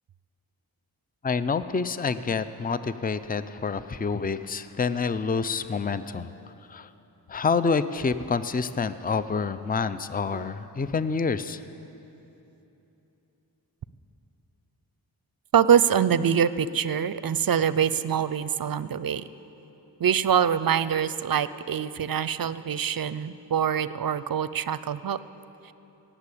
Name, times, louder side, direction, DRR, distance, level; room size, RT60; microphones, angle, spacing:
voice 1, 1.2-6.3 6.7-6.9 7.3-11.6, left 5 dB, 20° left, 13 dB, 0.5 m, -27 dB
voice 2, 15.5-19.2 20.0-25.2, right 8 dB, 55° right, 16 dB, 0.5 m, -24 dB
18.0 x 7.2 x 8.5 m, 2.9 s
cardioid pair, 45°, 42 cm